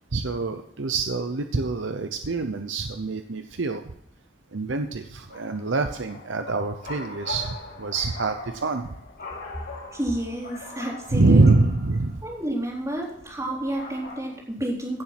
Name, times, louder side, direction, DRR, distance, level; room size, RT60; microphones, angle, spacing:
voice 1, 0.1-3.8 4.5-8.9 11.1-12.2, right 3 dB, 75° right, 7 dB, 0.8 m, -24 dB
sound 1, 5.3-14.2, left 3 dB, 55° left, 5.4 m, -42 dB
voice 2, 9.9-11.7 12.2-15.0, right 1 dB, 15° right, -3 dB, 3.8 m, -30 dB
16.0 x 7.2 x 6.0 m, 0.76 s
head